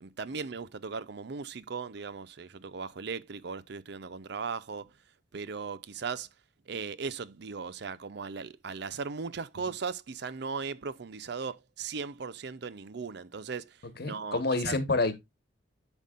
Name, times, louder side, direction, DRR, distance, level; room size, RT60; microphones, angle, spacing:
voice 1, 0.0-4.9 5.3-6.3 6.7-13.8 14.0-14.8, right 5 dB, 65° right, 0.6 m, -38 dB
voice 2, 14.0-15.2, left 3 dB, 60° left, 1.3 m, -28 dB
11.5 x 5.3 x 2.4 m
head